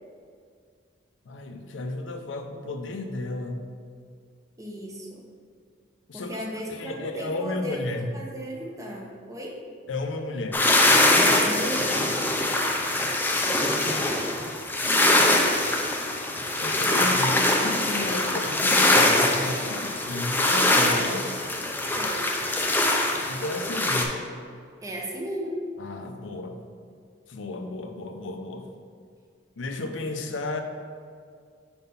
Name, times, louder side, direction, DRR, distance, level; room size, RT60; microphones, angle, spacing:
voice 1, 1.2-3.6 6.1-6.4 6.7-8.2 9.9-10.6 16.6-21.4 23.3-24.2 25.8-26.6 27.3-28.7 29.6-30.6, left 2 dB, 90° left, 5 dB, 0.5 m, -33 dB
voice 2, 4.6-5.2 6.1-7.8 8.1-9.6 11.4-11.9 21.9-22.4 24.8-25.6, equal, 15° right, -1 dB, 0.8 m, -35 dB
sound 1, 10.5-24.1, left 2 dB, 10° left, 0.4 m, -23 dB
4.3 x 4.0 x 5.4 m, 2.1 s
head